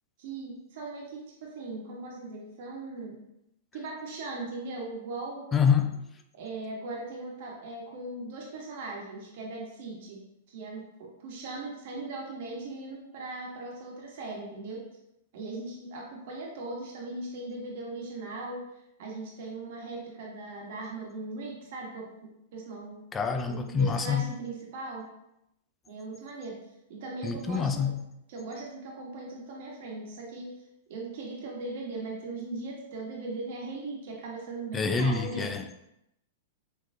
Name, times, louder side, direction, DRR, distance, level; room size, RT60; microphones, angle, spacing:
voice 1, 0.2-3.2 3.7-5.5 6.3-10.2 10.5-14.8 15.3-18.6 19.0-22.1 22.5-23.0 23.5-25.1 25.9-26.6 26.9-27.9 28.3-30.5 30.9-35.5, right 2 dB, 60° right, 1.2 m, -39 dB
voice 2, 5.5-6.0 23.1-24.3 27.2-28.0 34.7-35.7, left 6 dB, 20° left, 0.4 m, -26 dB
4.4 x 3.0 x 2.6 m
hypercardioid pair, 125°, 0 cm